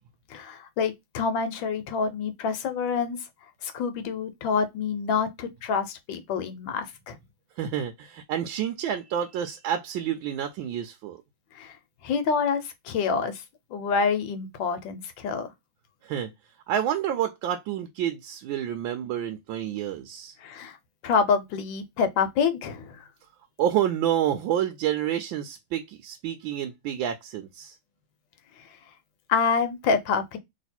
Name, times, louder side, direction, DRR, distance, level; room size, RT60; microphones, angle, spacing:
voice 1, 0.3-3.2 3.6-7.2 11.5-11.8 12.0-13.4 13.7-15.5 20.4-20.8 21.0-23.0 28.6-28.7 29.3-30.4, left 5 dB, 80° left, 1.5 m, -27 dB
voice 2, 7.6-11.2 16.0-16.3 16.7-20.3 23.6-27.8, right 10 dB, 80° right, 1.3 m, -29 dB
3.2 x 2.9 x 4.2 m
omnidirectional pair, 2.1 m